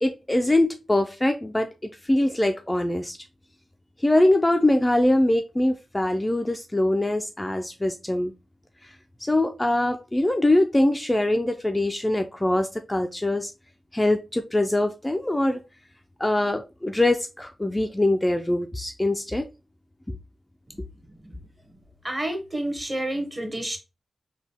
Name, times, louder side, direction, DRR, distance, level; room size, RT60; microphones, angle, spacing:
voice 1, 0.0-3.2 4.0-8.3 9.2-13.5 13.9-15.6 16.2-19.5, left 1 dB, 15° left, 0.4 m, -23 dB
voice 2, 21.1-21.4 22.0-23.8, right 1 dB, 20° right, 1.1 m, -30 dB
3.9 x 2.3 x 3.4 m
cardioid pair, 65°, 0 cm